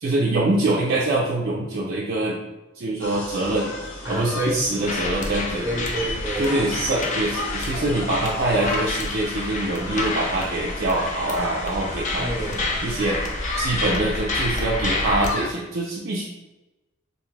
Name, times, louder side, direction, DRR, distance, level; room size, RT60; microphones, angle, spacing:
voice 1, 0.0-2.4 2.8-3.7 4.1-5.7 6.4-12.3 12.8-13.2 13.6-16.2, right 2 dB, 55° right, -3 dB, 0.4 m, -24 dB
sound 1, 3.0-15.5, left 2 dB, 80° left, 1.0 m, -36 dB
voice 2, 4.0-4.6 5.6-6.5 12.2-12.8, right 1 dB, 20° right, -5 dB, 0.8 m, -28 dB
sound 2, 4.8-15.3, left 2 dB, 40° left, 0.4 m, -28 dB
2.6 x 2.3 x 3.2 m, 1.0 s
head